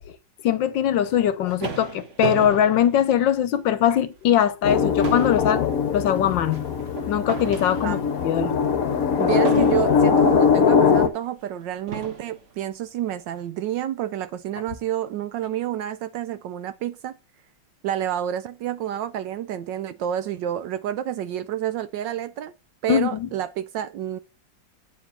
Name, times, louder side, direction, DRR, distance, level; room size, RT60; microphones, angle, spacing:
voice 1, 0.4-8.0 8.2-8.5 9.6-9.7 22.9-23.3, left 10 dB, 70° left, 1.4 m, -22 dB
sound 1, 1.1-3.7 4.2-4.4 4.7-8.2 9.5-10.2 11.1-11.2 11.9-12.4, right 5 dB, 40° right, 1.3 m, -33 dB
sound 2, 4.6-11.1, left 6 dB, 50° left, 1.2 m, -21 dB
voice 2, 9.2-17.2 17.8-22.5 22.8-24.2, right 11 dB, 70° right, 1.1 m, -29 dB
8.6 x 4.8 x 6.8 m
omnidirectional pair, 2.3 m